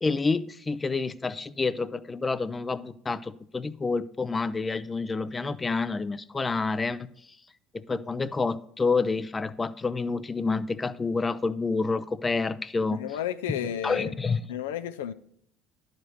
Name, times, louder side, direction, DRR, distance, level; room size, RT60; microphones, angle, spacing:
voice 1, 0.0-7.1 7.7-13.0 13.5-13.6 13.8-14.4, left 4 dB, 25° left, 0.4 m, -28 dB
voice 2, 13.0-14.2 14.5-15.1, left 10 dB, 80° left, 0.4 m, -32 dB
11.0 x 5.1 x 4.5 m
hypercardioid pair, 70°, 0 cm